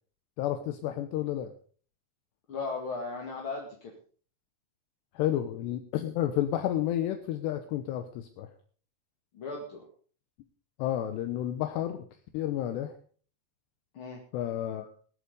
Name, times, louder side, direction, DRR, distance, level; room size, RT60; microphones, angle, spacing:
voice 1, 0.4-1.5 5.1-8.5 10.8-12.0 12.3-12.9 14.3-14.9, left 12 dB, 75° left, 7 dB, 3.0 m, -31 dB
voice 2, 2.5-3.9 9.3-9.9 13.9-14.2, left 3 dB, 40° left, 0 dB, 2.0 m, -36 dB
19.5 x 8.7 x 5.3 m, 0.44 s
omnidirectional pair, 5.1 m